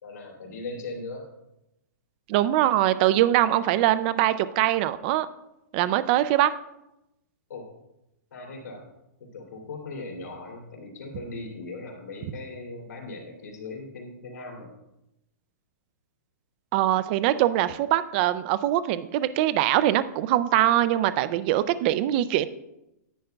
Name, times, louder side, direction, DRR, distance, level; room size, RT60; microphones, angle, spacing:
voice 1, 0.0-1.3 3.5-3.8 7.5-7.7 8.3-8.8 9.3-14.7, left 3 dB, 85° left, 0 dB, 2.9 m, -39 dB
voice 2, 2.3-5.3 5.7-6.5 16.7-22.5, right 13 dB, 35° right, 15 dB, 0.3 m, -22 dB
10.5 x 8.8 x 2.3 m, 0.89 s
hypercardioid pair, 155°, 10 cm